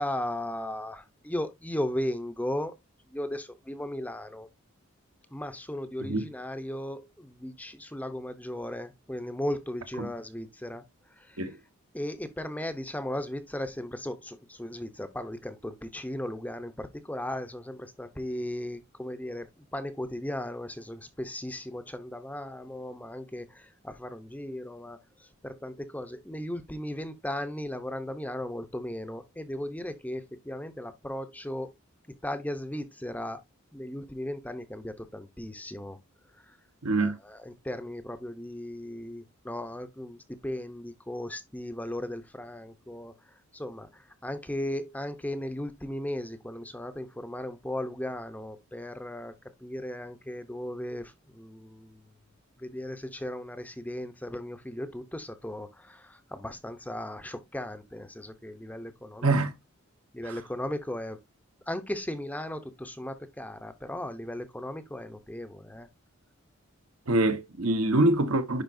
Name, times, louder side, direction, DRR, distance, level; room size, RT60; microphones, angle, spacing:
voice 1, 0.0-2.7 3.1-4.5 5.3-10.8 11.2-11.4 11.9-31.7 32.2-33.4 33.7-36.0 36.4-36.6 37.0-49.3 49.6-52.0 52.6-59.3 60.1-61.2 61.7-65.9, left 1 dB, 5° left, 0.6 m, -36 dB
voice 2, 36.8-37.1 59.2-59.5 60.2-60.3 67.1-68.6, right 2 dB, 80° right, 1.1 m, -25 dB
10.5 x 4.2 x 2.6 m
head